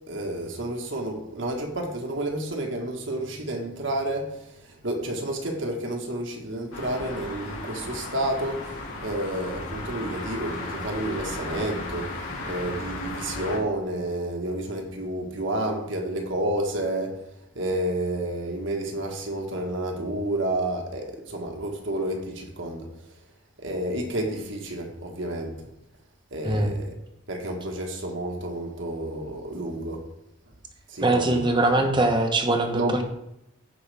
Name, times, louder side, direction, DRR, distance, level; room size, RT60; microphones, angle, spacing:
voice 1, 0.1-4.4 4.7-8.7 9.0-12.1 12.4-17.2 17.5-22.9 23.6-25.7 26.3-26.9 27.3-30.1 30.9-31.4 32.7-33.0, right 1 dB, 65° right, 1.5 m, -30 dB
sound 1, 6.7-13.6, left 2 dB, 90° left, 2.7 m, -35 dB
voice 2, 31.0-33.0, right 2 dB, 20° right, 1.0 m, -22 dB
15.5 x 5.4 x 3.4 m
head